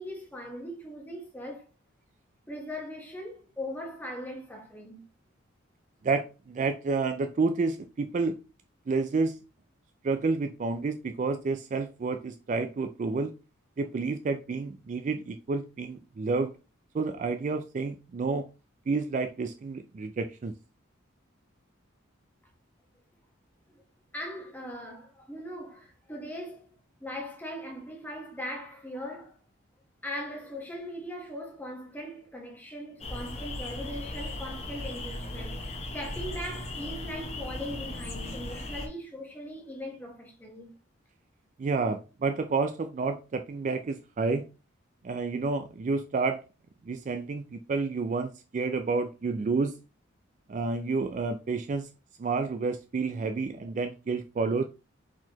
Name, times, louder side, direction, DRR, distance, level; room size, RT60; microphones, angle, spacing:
voice 1, 0.0-1.6 2.5-5.1 23.7-23.8 24.1-26.7 27.0-29.4 30.0-40.7, equal, 10° left, 1.2 m, -40 dB
voice 2, 6.0-8.4 8.9-9.4 10.0-13.3 13.8-16.5 16.9-18.5 18.9-20.5 41.6-44.5 45.0-46.4 46.8-49.7 50.5-51.9 52.2-54.6, right 4 dB, 35° right, 0.3 m, -29 dB
sound 1, 33.0-38.9, left 2 dB, 30° left, 0.9 m, -37 dB
4.5 x 4.0 x 2.9 m
head